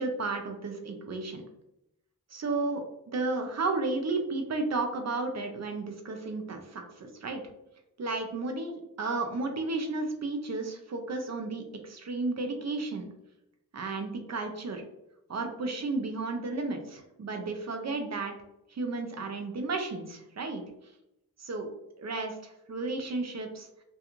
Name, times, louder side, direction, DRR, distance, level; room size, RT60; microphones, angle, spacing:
voice 1, 0.0-1.4 2.3-7.4 8.0-13.0 13.7-14.8 15.3-18.3 18.7-20.6 21.4-21.7 22.0-23.7, right 3 dB, 50° right, 4 dB, 0.5 m, -33 dB
2.4 x 2.3 x 2.9 m, 0.86 s
wide cardioid pair, 95°, 35 cm